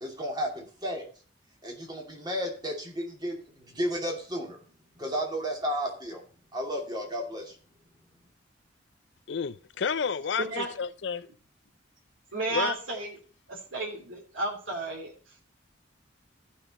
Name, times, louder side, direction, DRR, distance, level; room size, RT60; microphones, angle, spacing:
voice 1, 0.0-1.0 1.6-4.6 5.0-6.2 6.5-7.5, equal, 20° right, 2.7 m, -33 dB
voice 2, 9.3-11.3 12.5-12.7, left 6 dB, 65° left, 0.5 m, -30 dB
voice 3, 10.4-10.7 12.3-13.2 13.5-15.4, right 2 dB, 85° right, 3.0 m, -33 dB
14.0 x 6.0 x 4.3 m
head